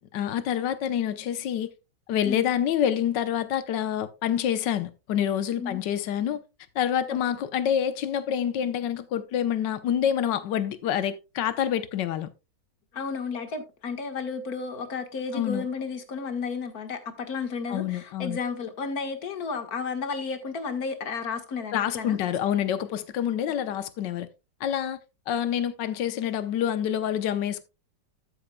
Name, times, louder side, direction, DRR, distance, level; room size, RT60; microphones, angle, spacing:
voice 1, 0.1-1.7 2.1-6.4 6.7-12.3 15.3-15.7 17.7-18.4 21.7-24.3 24.6-25.0 25.3-27.6, left 9 dB, 80° left, 1.5 m, -27 dB
voice 2, 12.9-22.2, left 5 dB, 55° left, 2.0 m, -33 dB
13.0 x 8.6 x 2.3 m
omnidirectional pair, 1.9 m